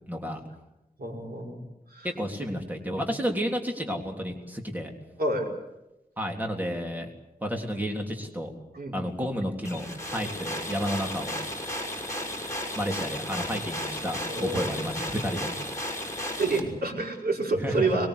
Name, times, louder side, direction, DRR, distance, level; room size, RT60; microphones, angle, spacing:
voice 1, 0.1-0.4 2.0-4.9 6.2-7.1 7.4-8.5 8.9-11.4 12.7-15.5 17.6-17.9, equal, 10° right, 2 dB, 3.4 m, -31 dB
voice 2, 1.0-1.6 1.9-2.1 5.2-5.5 8.7-9.1 14.3-14.9 16.4-18.1, right 2 dB, 85° right, 0 dB, 5.5 m, -28 dB
sound 1, 9.6-16.6, left 1 dB, 20° left, 6.2 m, -34 dB
23.5 x 21.0 x 8.3 m, 0.95 s
wide cardioid pair, 110°, 15 cm